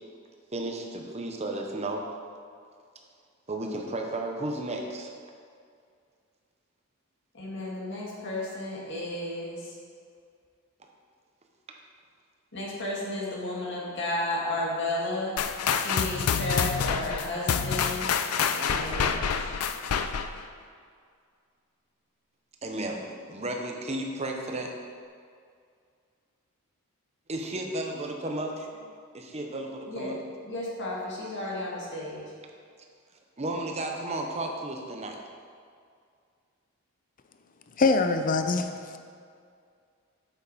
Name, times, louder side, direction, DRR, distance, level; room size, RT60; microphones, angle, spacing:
voice 1, 0.5-2.2 3.5-5.1 11.7-11.8 22.6-24.7 27.3-28.5 29.1-30.2 33.4-35.2, right 2 dB, 30° right, 2 dB, 0.9 m, -33 dB
voice 2, 7.3-9.7 12.5-15.4 15.7-18.1 18.5-19.5 29.9-30.1 30.5-32.2, left 1 dB, 55° left, -4 dB, 2.0 m, -33 dB
sound 1, 15.4-20.4, left 6 dB, 85° left, 0.5 m, -27 dB
voice 3, 37.8-38.7, left 3 dB, 40° left, 7 dB, 0.5 m, -23 dB
8.3 x 8.1 x 4.2 m, 2.2 s
head